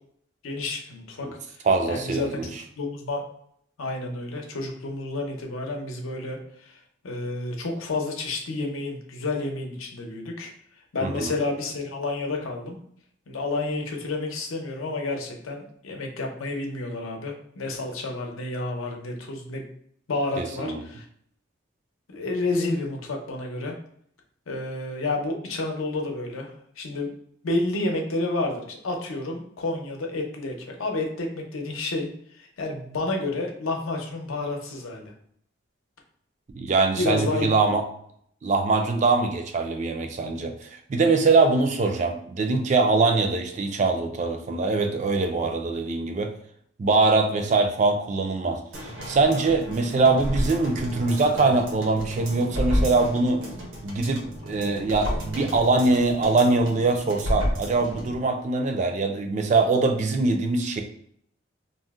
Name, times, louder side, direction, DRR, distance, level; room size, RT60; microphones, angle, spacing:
voice 1, 0.4-1.3 1.8-2.4 2.8-3.2 3.8-6.8 7.0-10.5 10.9-12.8 13.3-19.6 20.1-21.1 22.1-23.7 24.5-26.5 26.8-27.1 27.4-35.1 37.0-37.7, left 2 dB, 90° left, 1 dB, 0.7 m, -30 dB
voice 2, 1.6-2.5 11.0-11.3 20.4-20.8 36.5-37.8 38.4-46.3 46.8-48.6 49.0-53.4 53.8-60.8, right 3 dB, 35° right, 4 dB, 0.3 m, -23 dB
sound 1, 48.7-58.2 58.5-58.6, equal, 75° right, 0.8 m, -31 dB
2.6 x 2.1 x 3.4 m, 0.66 s
head